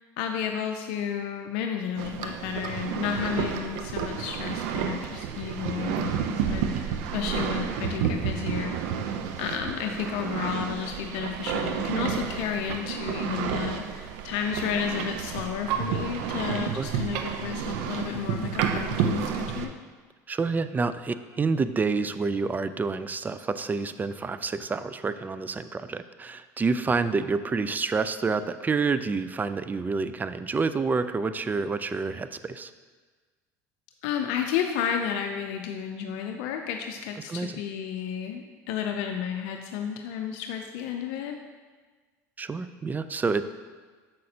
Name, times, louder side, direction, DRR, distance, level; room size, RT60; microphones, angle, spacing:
voice 1, 0.2-8.9 9.4-19.7 34.0-41.4, left 8 dB, 70° left, 4 dB, 0.5 m, -32 dB
sound 1, 2.0-19.7, right 7 dB, 75° right, 0.5 m, -30 dB
voice 2, 20.3-32.7 37.3-37.5 42.4-43.4, right 4 dB, 20° right, 12 dB, 0.3 m, -28 dB
7.6 x 6.3 x 2.8 m, 1.4 s
supercardioid pair, 85°, 9 cm